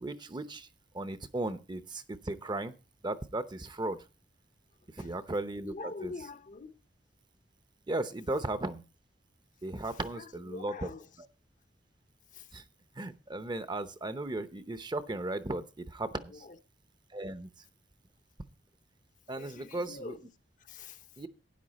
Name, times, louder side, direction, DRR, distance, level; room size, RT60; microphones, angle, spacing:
voice 1, 0.0-0.7 0.9-2.7 3.0-4.0 4.9-5.7 6.0-6.1 7.9-8.8 9.6-10.9 12.5-12.6 13.0-16.3 17.1-17.5 19.3-20.2 21.2-21.3, right 2 dB, 25° right, 0.7 m, -36 dB
voice 2, 4.8-5.2 5.6-6.8 9.8-11.1 12.3-12.5 16.3-16.6 19.4-20.2 20.6-21.2, left 3 dB, 45° left, 0.8 m, -45 dB
12.5 x 9.6 x 4.1 m
head